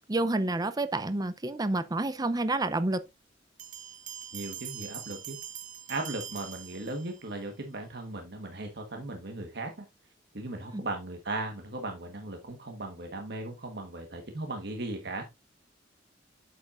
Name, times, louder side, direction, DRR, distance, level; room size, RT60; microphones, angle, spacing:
voice 1, 0.1-3.1 10.7-10.8, right 2 dB, 20° right, 0.5 m, -29 dB
sound 1, 3.6-7.4, right 10 dB, 45° right, 1.0 m, -43 dB
voice 2, 4.3-5.4 5.9-9.7 10.3-15.2, right 2 dB, 60° right, 1.4 m, -37 dB
8.7 x 7.6 x 2.5 m
head